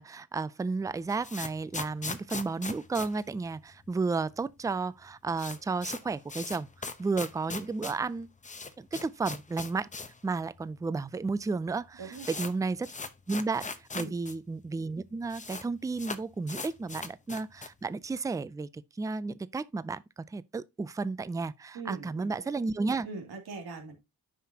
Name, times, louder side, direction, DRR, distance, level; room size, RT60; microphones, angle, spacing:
voice 1, 0.0-6.7 7.0-8.3 8.8-9.9 10.2-12.9 13.3-13.7 13.9-20.0 20.3-23.1, right 4 dB, 10° right, 0.3 m, -32 dB
sound 1, 0.8-4.1 4.3-4.4 4.7-4.8 5.1-10.2 10.5-10.6 11.3-11.4 11.7-14.4 14.6-14.7 14.9-15.7 16.0-17.9, left 4 dB, 20° left, 0.8 m, -40 dB
voice 2, 12.0-12.4 13.9-14.1 21.7-22.5 23.0-23.9, right 4 dB, 75° right, 2.8 m, -42 dB
9.4 x 5.8 x 2.8 m
wide cardioid pair, 125°, 37 cm